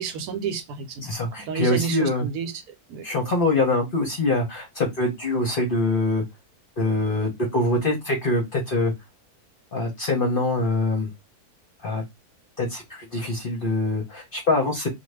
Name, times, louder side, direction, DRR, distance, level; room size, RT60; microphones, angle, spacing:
voice 1, 0.0-1.1 1.4-2.5 2.9-3.0, right 6 dB, 85° right, 1.2 m, -30 dB
voice 2, 1.0-2.3 3.0-6.2 6.8-8.9 9.7-11.1 11.8-12.0 12.6-14.9, left 2 dB, 50° left, 0.7 m, -24 dB
2.5 x 2.3 x 3.1 m
omnidirectional pair, 1.6 m